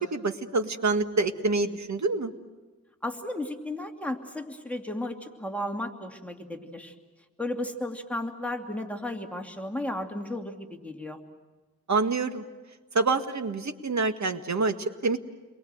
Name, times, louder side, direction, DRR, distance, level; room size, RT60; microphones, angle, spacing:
voice 1, 0.0-2.3 11.9-12.4 12.9-15.2, right 3 dB, 65° right, 7 dB, 1.8 m, -27 dB
voice 2, 3.0-6.9 7.4-11.2, left 1 dB, 5° left, 2 dB, 2.6 m, -34 dB
29.5 x 23.0 x 7.9 m, 1.2 s
wide cardioid pair, 70°, 31 cm